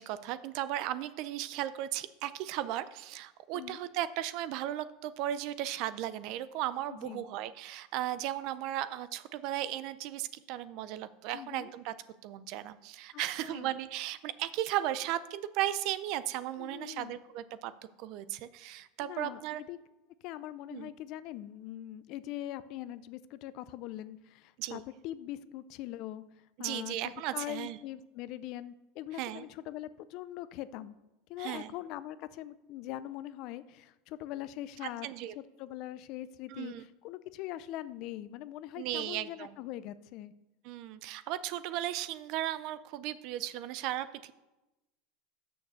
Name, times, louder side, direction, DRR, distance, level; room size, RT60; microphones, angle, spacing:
voice 1, 0.0-11.9 12.2-17.7 18.0-19.6 20.7-20.9 24.6-24.8 26.6-27.8 29.2-29.4 31.4-31.7 35.0-35.3 36.5-36.8 38.8-39.5 40.6-44.3, right 13 dB, 55° right, 15 dB, 0.4 m, -36 dB
voice 2, 6.9-7.2 11.3-11.7 13.1-13.7 16.6-17.2 19.0-19.8 20.2-26.2 26.6-31.0 31.3-35.1 35.4-40.3, left 13 dB, 50° left, 16 dB, 0.4 m, -42 dB
6.5 x 6.5 x 6.8 m, 1.0 s
supercardioid pair, 140°, 0 cm